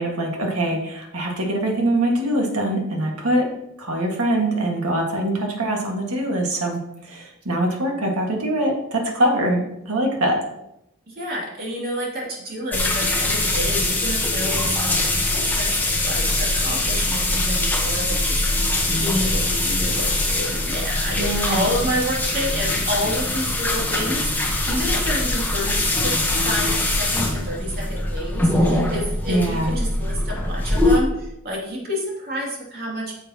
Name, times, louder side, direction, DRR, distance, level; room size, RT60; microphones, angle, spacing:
voice 1, 0.0-10.4 21.2-21.8 29.3-29.7, right 1 dB, 85° right, 0 dB, 1.8 m, -23 dB
voice 2, 11.1-26.1 26.4-33.1, equal, 45° right, -3 dB, 2.7 m, -29 dB
sound 1, 12.7-31.0, left 2 dB, 10° left, 1.1 m, -22 dB
9.8 x 7.0 x 2.9 m, 0.85 s
head